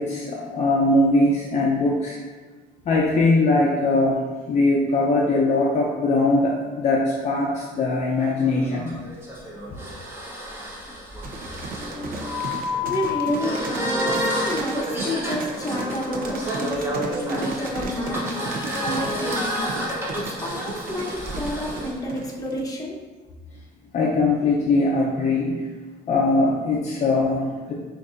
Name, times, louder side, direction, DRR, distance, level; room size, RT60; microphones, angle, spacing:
voice 1, 0.0-2.2 2.9-8.9 9.7-9.8 23.9-25.7 26.1-27.7, left 2 dB, 45° left, -3 dB, 0.6 m, -21 dB
sound 1, 8.2-21.9, left 1 dB, 15° right, 0.9 m, -29 dB
sound 2, 11.2-22.7, right 4 dB, 60° right, 0.6 m, -35 dB
voice 2, 12.8-19.6 20.1-23.0, equal, 20° left, -3 dB, 0.9 m, -30 dB
6.4 x 2.6 x 2.5 m, 1.3 s
cardioid pair, 110°, 17 cm